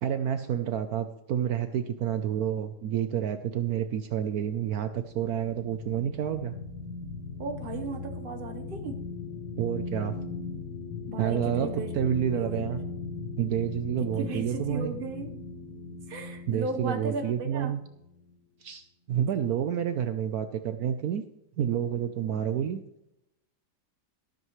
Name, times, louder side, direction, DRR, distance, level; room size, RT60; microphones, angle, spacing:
voice 1, 0.0-6.5 9.6-10.2 11.2-12.8 13.4-14.9 16.5-17.8 18.6-21.2 21.6-22.8, right 9 dB, 70° right, 9 dB, 1.1 m, -29 dB
sound 1, 4.9-18.3, left 3 dB, 80° left, 2.4 m, -39 dB
voice 2, 7.4-9.0 11.1-11.9 12.3-12.6 14.2-15.3 16.1-17.7, right 3 dB, 35° right, 4 dB, 1.3 m, -36 dB
13.5 x 13.0 x 3.2 m, 0.85 s
omnidirectional pair, 1.8 m